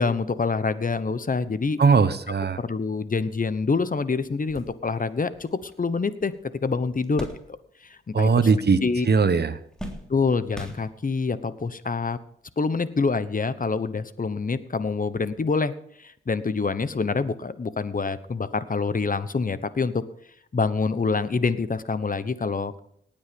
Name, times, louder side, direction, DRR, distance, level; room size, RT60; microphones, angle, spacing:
voice 1, 0.0-1.8 2.6-6.3 6.6-7.3 7.8-8.5 8.8-9.1 10.1-12.2 12.6-20.0 20.5-22.8, left 4 dB, 40° left, 14 dB, 1.1 m, -26 dB
voice 2, 1.8-2.6 8.1-9.6, right 5 dB, 50° right, 12 dB, 1.1 m, -20 dB
sound 1, 4.2-8.0 8.3-9.0 9.3-11.3 12.1-12.2 13.5-13.7, equal, 5° left, 3.5 m, -42 dB
18.0 x 8.9 x 5.3 m, 0.70 s
cardioid pair, 55°, 21 cm